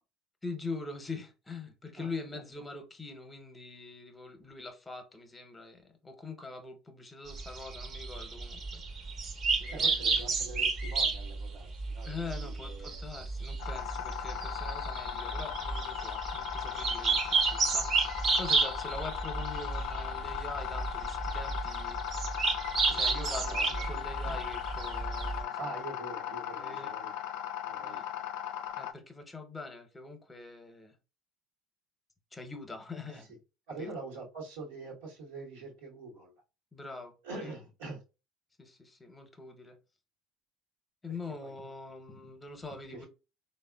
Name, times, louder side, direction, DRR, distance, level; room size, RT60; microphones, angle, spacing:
voice 1, 0.4-8.8 9.6-10.2 12.1-22.4 22.9-25.7 26.5-26.9 27.8-28.1 28.8-31.0 32.3-33.3 33.8-33.9 36.7-37.5 38.6-39.8 41.0-43.1, left 3 dB, 15° left, 0.8 m, -43 dB
voice 2, 2.0-2.4 9.7-13.1 22.8-24.5 25.6-27.1 27.6-28.0 33.1-33.3 33.7-36.3 37.2-38.0 41.4-41.7 42.9-43.1, right 3 dB, 85° right, 1.0 m, -45 dB
sound 1, 7.3-25.4, right 4 dB, 45° right, 0.7 m, -32 dB
sound 2, 13.6-28.9, left 10 dB, 70° left, 0.3 m, -38 dB
3.5 x 2.1 x 2.2 m
hypercardioid pair, 75°, 0 cm